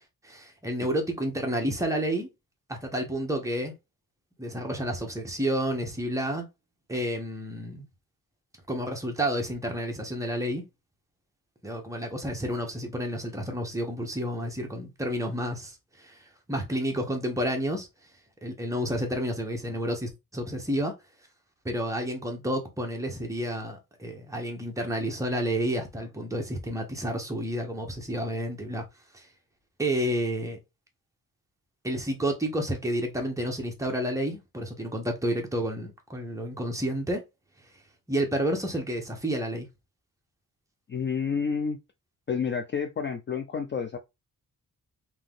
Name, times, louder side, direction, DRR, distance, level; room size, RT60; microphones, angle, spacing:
voice 1, 0.2-2.3 2.7-3.7 4.4-6.4 6.9-7.9 8.7-10.6 11.6-17.9 18.4-20.9 21.6-28.8 29.1-29.3 29.8-30.6 31.8-37.2 38.1-39.7, equal, 10° right, 0.9 m, -30 dB
voice 2, 40.9-41.8 42.3-44.0, left 6 dB, 35° left, 0.4 m, -29 dB
3.7 x 2.8 x 3.5 m
wide cardioid pair, 180°, 35 cm